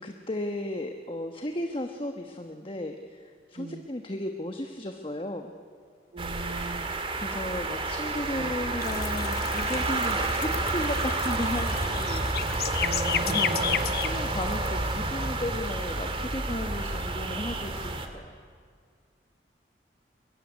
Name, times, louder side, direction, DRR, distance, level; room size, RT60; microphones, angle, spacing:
voice 1, 0.0-5.5 7.1-12.7 13.2-13.6 13.9-18.3, left 1 dB, 30° left, 5 dB, 1.2 m, -35 dB
voice 2, 6.1-6.9 8.4-8.5 12.8-13.9, right 2 dB, 45° right, 12 dB, 0.8 m, -38 dB
sound 1, 6.2-18.1, right 2 dB, 30° right, 2.0 m, -30 dB
sound 2, 8.8-15.9, left 8 dB, 60° left, 0.9 m, -33 dB
23.0 x 22.0 x 9.7 m, 2.1 s
head